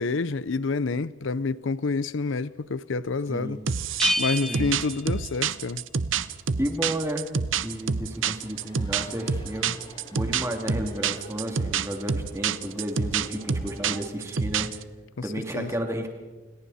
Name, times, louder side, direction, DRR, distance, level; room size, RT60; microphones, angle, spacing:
voice 1, 0.0-3.6 4.2-5.8 15.2-15.3 15.5-15.7, left 4 dB, 85° left, 0.6 m, -28 dB
sound 1, 2.4-14.1, left 1 dB, 25° left, 5.4 m, -52 dB
voice 2, 3.3-3.6 4.3-4.7 6.6-7.2 7.6-9.8 10.1-14.7 15.2-16.1, equal, 15° right, 2.7 m, -32 dB
sound 2, 3.7-14.8, right 6 dB, 90° right, 0.8 m, -27 dB
Bell, 4.0-5.8, left 1 dB, ahead, 1.1 m, -29 dB
29.0 x 28.5 x 4.2 m
head